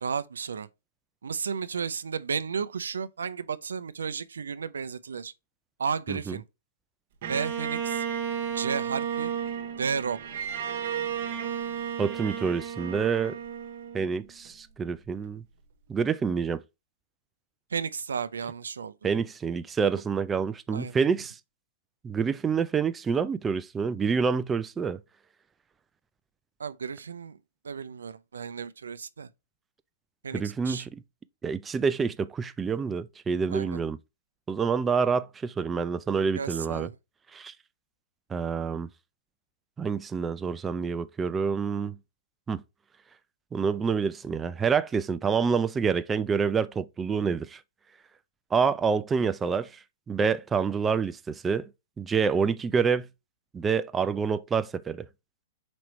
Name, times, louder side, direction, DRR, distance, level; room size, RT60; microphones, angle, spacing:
voice 1, 0.0-0.7 1.2-5.3 5.8-6.4 7.3-8.0 8.5-9.3 9.8-10.2 17.7-19.1 20.7-20.9 26.6-27.4 27.6-29.3 30.2-30.8 33.5-33.8 36.3-37.0, right 6 dB, 85° right, 0.4 m, -33 dB
Bowed string instrument, 7.2-14.5, right 8 dB, 55° right, 1.1 m, -33 dB
voice 2, 12.0-13.4 13.9-15.4 15.9-16.6 19.0-21.4 22.0-25.0 30.3-31.0 31.4-34.0 34.5-36.9 37.3-37.5 38.3-38.9 39.8-42.0 42.5-42.6 43.5-47.6 48.5-51.7 52.0-53.1 53.5-55.1, right 6 dB, 15° right, 0.3 m, -27 dB
5.1 x 3.0 x 3.0 m
hypercardioid pair, 130°, 0 cm